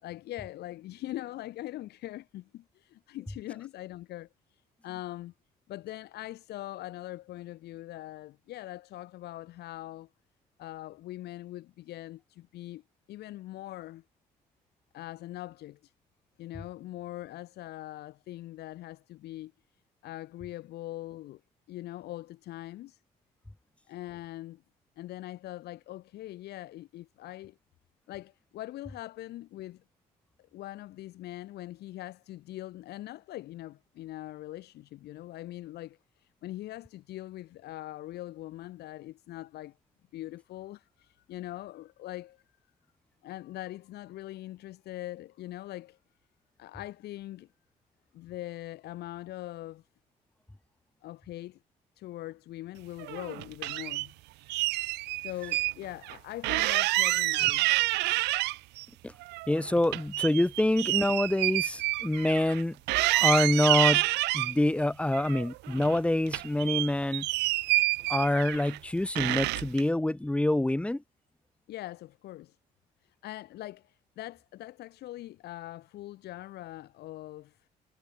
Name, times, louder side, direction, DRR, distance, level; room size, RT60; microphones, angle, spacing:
voice 1, 0.0-5.3 5.7-10.1 10.6-12.8 13.1-14.0 14.9-15.9 16.4-19.5 20.0-21.4 21.7-23.0 23.9-24.6 25.0-27.6 28.1-29.8 30.5-39.7 40.1-42.4 43.2-46.0 46.6-47.5 48.1-49.8 51.0-51.6 52.0-54.1 55.2-57.7 71.7-72.6 73.0-77.7, left 15 dB, 75° left, 3.0 m, -42 dB
sound 1, 53.0-54.1 54.5-55.7 56.0-56.1 56.4-58.8 59.2-62.6 62.9-64.5 65.1-66.0 66.3-68.8 69.2-69.8, right 21 dB, 85° right, 0.6 m, -28 dB
voice 2, 59.5-62.8 63.1-64.0 64.3-67.3 68.1-71.0, left 1 dB, 5° left, 3.1 m, -26 dB
cardioid pair, 110°, 17 cm